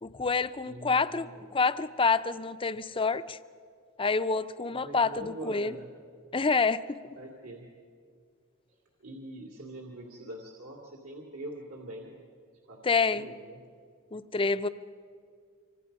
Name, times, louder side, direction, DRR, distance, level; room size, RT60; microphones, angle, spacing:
voice 1, 0.0-3.4 4.0-5.7 6.3-7.0 12.8-13.3 14.1-14.7, left 4 dB, 25° left, 12 dB, 0.6 m, -27 dB
voice 2, 0.6-1.5 4.7-5.9 7.2-7.7 9.0-12.2 12.7-13.6, right 1 dB, 75° right, 0 dB, 2.7 m, -44 dB
26.0 x 25.0 x 5.4 m, 2.1 s
head